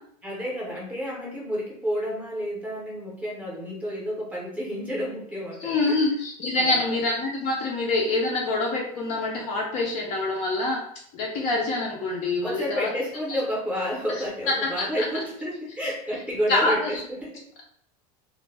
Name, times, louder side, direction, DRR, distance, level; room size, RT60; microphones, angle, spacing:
voice 1, 0.2-6.0 6.5-7.0 12.4-17.4, equal, 5° right, -4 dB, 0.6 m, -30 dB
voice 2, 5.6-10.8 11.1-12.9 13.3-13.4 14.8-15.0 16.5-17.0, left 2 dB, 35° left, -1 dB, 0.4 m, -26 dB
2.1 x 2.0 x 3.2 m, 0.68 s
supercardioid pair, 165°, 20 cm